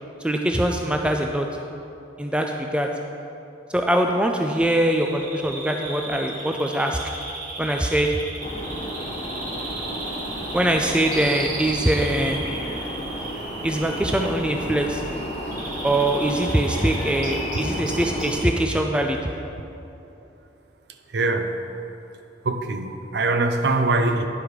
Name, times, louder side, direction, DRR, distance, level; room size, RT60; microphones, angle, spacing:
voice 1, 0.2-1.5 2.2-2.9 3.7-7.0 7.6-8.1 10.5-12.4 13.6-15.0 15.8-19.2, right 1 dB, 5° right, 3 dB, 0.3 m, -22 dB
Bird vocalization bird call bird song, 4.5-18.5, right 2 dB, 45° right, 1.0 m, -36 dB
sound 1, 8.4-18.3, equal, 35° left, 1.2 m, -32 dB
voice 2, 21.1-21.5 22.4-24.3, right 2 dB, 60° right, 7 dB, 0.5 m, -22 dB
9.9 x 5.0 x 4.7 m, 2.7 s
head